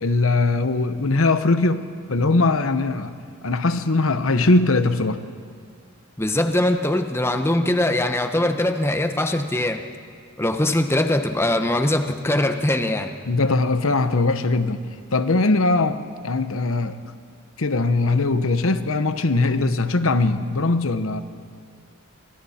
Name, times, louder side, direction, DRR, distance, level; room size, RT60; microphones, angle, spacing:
voice 1, 0.0-3.1 3.4-5.2 13.3-14.8 15.1-17.0 17.6-21.2, left 3 dB, 70° left, 10 dB, 1.0 m, -20 dB
voice 2, 6.2-9.8 10.4-13.1, left 1 dB, 10° left, 6 dB, 1.0 m, -22 dB
26.0 x 24.5 x 4.4 m, 2.1 s
head